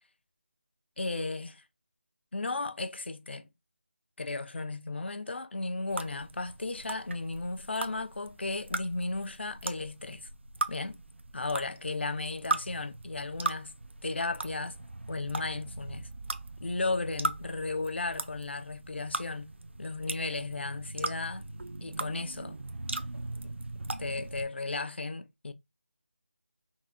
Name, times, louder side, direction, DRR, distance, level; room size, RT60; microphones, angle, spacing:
voice 1, 1.0-1.6 2.3-3.5 4.2-10.3 10.7-11.0 11.3-13.7 14.0-14.8 15.1-16.1 16.6-19.5 19.8-21.4 21.8-22.6 24.0-25.5, left 3 dB, 65° left, 0.8 m, -35 dB
sound 1, 5.9-24.4, right 2 dB, 75° right, 0.7 m, -39 dB
5.9 x 3.9 x 2.3 m
figure-of-eight pair, 160°, 6 cm